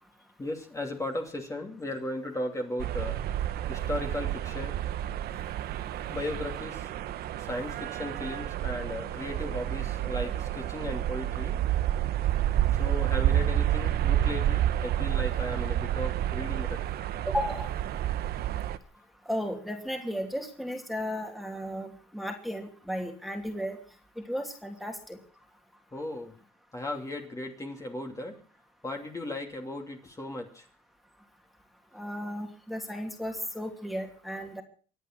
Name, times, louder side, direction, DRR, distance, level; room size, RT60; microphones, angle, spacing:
voice 1, 0.4-3.2 3.7-4.8 6.1-6.9 7.4-11.6 12.7-16.9 25.9-26.4 26.7-28.4 28.8-30.6, left 1 dB, 20° left, 2 dB, 2.7 m, -36 dB
sound 1, 2.8-18.8, right 12 dB, 65° right, 1.1 m, -29 dB
voice 2, 17.3-17.7 19.3-23.8 24.3-25.2 31.9-34.6, equal, ahead, 3 dB, 2.8 m, -34 dB
24.5 x 9.1 x 6.0 m, 0.41 s
cardioid pair, 110°, 17 cm